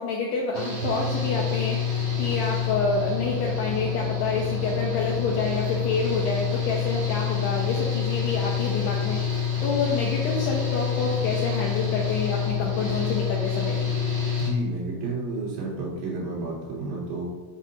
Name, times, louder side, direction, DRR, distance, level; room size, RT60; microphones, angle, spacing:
voice 1, 0.0-13.9, left 4 dB, 80° left, -2 dB, 2.4 m, -28 dB
Engine / Mechanical fan, 0.5-14.5, left 7 dB, 55° right, 1.5 m, -27 dB
voice 2, 14.4-17.3, right 3 dB, 80° right, -6 dB, 5.2 m, -31 dB
10.0 x 7.6 x 2.6 m, 1.3 s
omnidirectional pair, 5.8 m